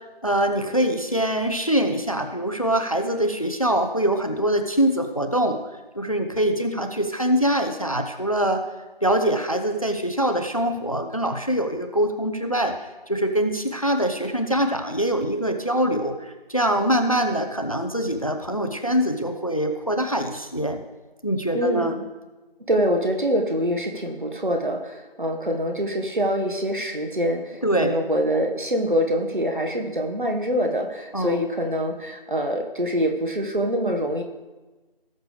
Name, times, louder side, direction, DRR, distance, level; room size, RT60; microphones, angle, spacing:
voice 1, 0.2-5.6 5.9-8.6 9.0-12.8 13.1-20.8 21.2-21.9 27.6-28.0 31.1-31.4, right 1 dB, 35° left, 6 dB, 0.7 m, -23 dB
voice 2, 21.5-22.0 22.7-34.2, equal, 55° right, 3 dB, 1.6 m, -25 dB
18.0 x 6.7 x 3.4 m, 1.2 s
figure-of-eight pair, 180°, 30 cm